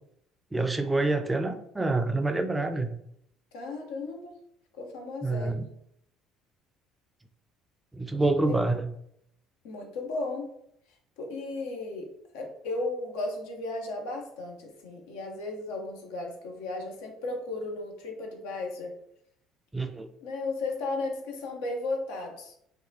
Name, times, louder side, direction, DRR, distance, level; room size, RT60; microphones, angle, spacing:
voice 1, 0.5-3.0 5.2-5.6 7.9-8.9 19.7-20.1, right 2 dB, 15° right, 7 dB, 0.3 m, -27 dB
voice 2, 3.5-4.4 4.7-5.7 8.5-8.6 9.6-10.5 11.2-12.1 12.3-18.9 20.2-22.5, left 2 dB, 70° left, 2 dB, 0.6 m, -35 dB
2.7 x 2.2 x 2.6 m, 0.72 s
figure-of-eight pair, 55°, 0 cm